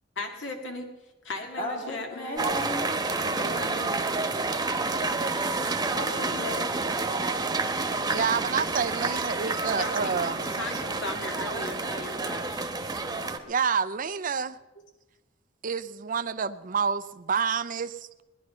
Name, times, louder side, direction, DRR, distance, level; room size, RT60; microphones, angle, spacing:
voice 1, 0.2-2.4 3.2-4.0 6.1-6.7 9.8-10.2 10.5-13.4, left 2 dB, 80° left, 3 dB, 2.1 m, -38 dB
voice 2, 1.6-3.0 4.8-6.9, left 1 dB, 45° left, -2 dB, 2.2 m, -37 dB
sound 1, 2.4-13.4, right 3 dB, 20° right, 1.2 m, -29 dB
voice 3, 8.1-10.5 12.5-12.6 13.5-14.6 15.6-18.2, right 6 dB, 45° right, 12 dB, 0.6 m, -28 dB
20.0 x 11.0 x 5.7 m, 1.1 s
head